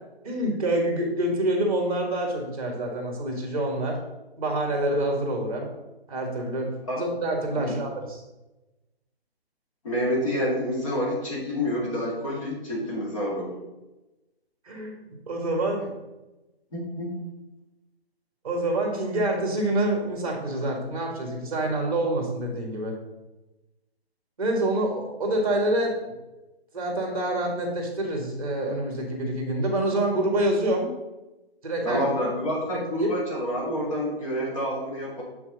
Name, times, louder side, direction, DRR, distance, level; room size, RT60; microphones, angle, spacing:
voice 1, 0.2-4.0 4.4-5.7 6.1-8.2 14.7-15.0 15.3-16.0 18.4-23.0 24.4-26.0 26.7-30.9 31.6-32.0 33.0-33.1, right 1 dB, 35° right, 1 dB, 1.8 m, -26 dB
voice 2, 9.8-13.6 16.7-17.2 31.8-35.2, equal, 30° left, -5 dB, 2.3 m, -28 dB
7.1 x 5.9 x 3.8 m, 1.1 s
hypercardioid pair, 175°, 32 cm